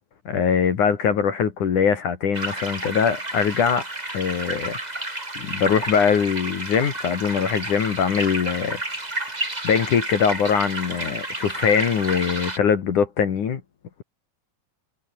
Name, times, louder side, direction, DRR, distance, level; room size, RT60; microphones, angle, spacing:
voice 1, 0.3-3.9 4.1-4.8 5.4-8.8 9.6-13.6, left 7 dB, 60° left, 3.7 m, -22 dB
sound 1, 2.3-12.6, right 2 dB, 10° right, 3.1 m, -31 dB
omnidirectional pair, 4.2 m